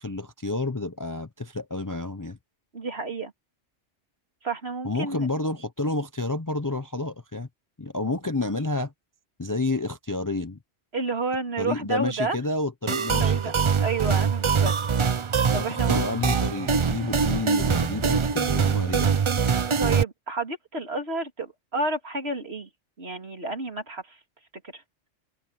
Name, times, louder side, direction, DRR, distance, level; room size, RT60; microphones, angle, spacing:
voice 1, 0.0-2.4 4.8-7.5 7.8-8.9 9.4-10.6 11.6-13.5 15.5-19.5, left 2 dB, 20° left, 0.6 m, -30 dB
voice 2, 2.7-3.3 4.4-5.3 10.9-12.4 13.2-14.8 15.5-16.0 19.8-22.7 23.0-24.2 24.7-24.8, right 3 dB, 55° right, 3.2 m, -30 dB
sound 1, 12.9-20.0, right 6 dB, 40° right, 0.4 m, -23 dB
omnidirectional pair, 1.3 m